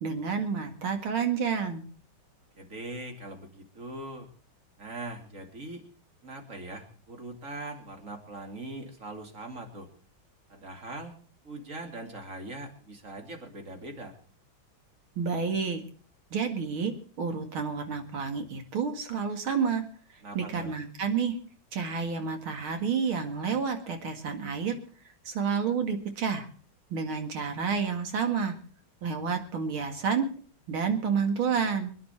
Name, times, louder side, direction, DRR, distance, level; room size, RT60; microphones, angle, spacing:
voice 1, 0.0-1.8 15.2-15.8 16.3-19.8 20.3-21.4 21.7-24.8 25.2-26.5 26.9-28.6 29.0-30.3 30.7-31.9, right 6 dB, 85° right, 5 dB, 2.8 m, -29 dB
voice 2, 2.5-4.3 4.8-5.8 6.2-9.9 10.5-11.1 11.4-14.2 20.2-20.7, right 2 dB, 40° right, 4 dB, 2.9 m, -41 dB
25.5 x 10.0 x 4.4 m, 0.43 s
omnidirectional pair, 2.2 m